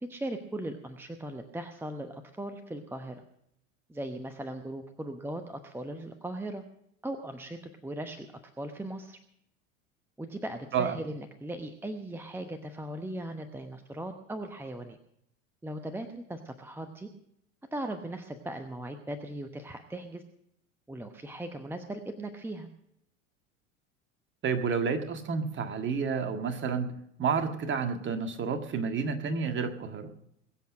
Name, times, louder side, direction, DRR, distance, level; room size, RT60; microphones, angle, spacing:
voice 1, 0.0-3.2 3.9-6.6 7.0-8.3 8.6-9.2 10.2-15.0 15.6-17.1 17.7-20.2 20.9-22.7, right 1 dB, 5° right, 8 dB, 1.0 m, -38 dB
voice 2, 24.4-26.9 27.2-30.1, right 5 dB, 30° right, 7 dB, 1.8 m, -30 dB
21.5 x 8.2 x 6.5 m, 0.74 s
figure-of-eight pair, 80°, 41 cm